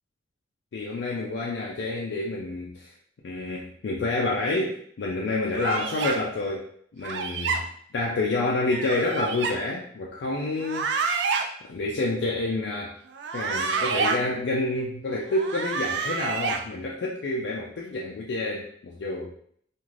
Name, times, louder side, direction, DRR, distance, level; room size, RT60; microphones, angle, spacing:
voice 1, 0.7-2.9 3.2-6.7 6.9-7.7 7.9-10.9 11.7-12.9 13.3-19.3, left 2 dB, 80° left, -3 dB, 0.4 m, -28 dB
sound 1, 5.6-6.2 7.0-7.6 8.7-9.5 10.6-11.4 13.1-14.2 15.3-16.6, right 5 dB, 75° right, 0.3 m, -28 dB
2.5 x 2.4 x 3.1 m, 0.64 s
head